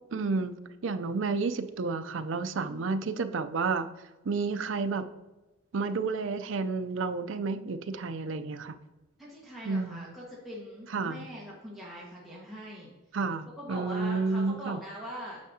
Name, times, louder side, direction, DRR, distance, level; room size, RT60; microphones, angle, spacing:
voice 1, 0.1-0.5 0.8-3.9 4.2-5.1 5.7-8.7 9.7-10.0 10.9-11.2 13.1-14.8, right 4 dB, 65° right, 9 dB, 0.5 m, -30 dB
voice 2, 2.6-2.9 9.2-12.9 13.6-15.4, equal, ahead, -7 dB, 1.5 m, -42 dB
9.5 x 6.4 x 2.8 m, 1.1 s
head